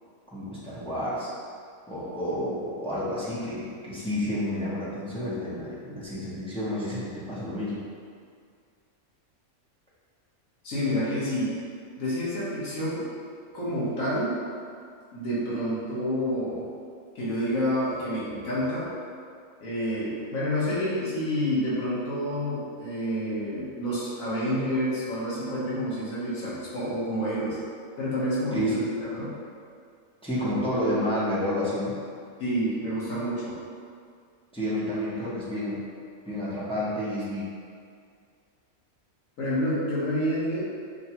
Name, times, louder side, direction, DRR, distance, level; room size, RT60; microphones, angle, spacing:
voice 1, 0.3-1.3 1.9-7.8 28.5-29.0 30.2-32.0 34.5-35.8 36.2-37.5, equal, 5° left, -10 dB, 0.5 m, -30 dB
voice 2, 10.6-11.5 12.0-13.1 13.5-14.4 15.1-16.7 17.1-18.9 19.6-27.6 28.0-29.3 32.4-33.6 39.4-40.6, equal, 70° left, -9 dB, 1.5 m, -28 dB
5.7 x 2.3 x 2.9 m, 2.2 s
omnidirectional pair, 1.5 m